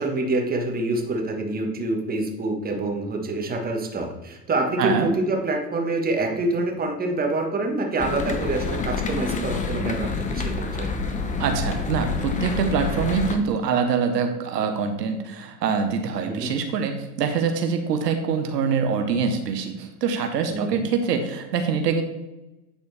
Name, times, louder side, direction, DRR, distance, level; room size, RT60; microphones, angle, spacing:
voice 1, 0.0-10.9 16.2-16.5 20.5-20.9, right 2 dB, 20° right, 2 dB, 1.3 m, -26 dB
voice 2, 4.8-5.1 11.4-22.0, right 6 dB, 90° right, 6 dB, 1.0 m, -24 dB
sound 1, 8.0-13.4, left 4 dB, 15° left, 0.7 m, -28 dB
9.4 x 4.1 x 3.4 m, 1.0 s
hypercardioid pair, 105°, 47 cm